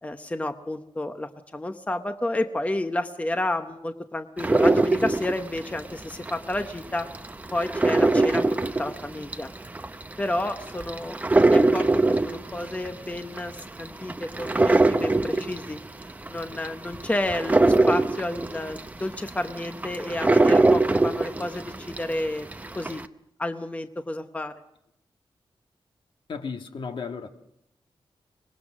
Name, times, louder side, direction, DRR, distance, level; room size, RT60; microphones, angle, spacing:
voice 1, 0.0-7.1 7.5-9.5 10.2-11.2 11.4-15.8 16.3-22.5 22.7-23.0 23.4-24.6, left 1 dB, 15° left, 0.9 m, -31 dB
sound 1, 4.4-6.6 7.0-22.1 22.5-23.1, right 2 dB, 15° right, 0.7 m, -22 dB
voice 2, 26.3-27.3, left 5 dB, 60° left, 1.6 m, -34 dB
24.0 x 20.5 x 6.2 m
wide cardioid pair, 155°, 9 cm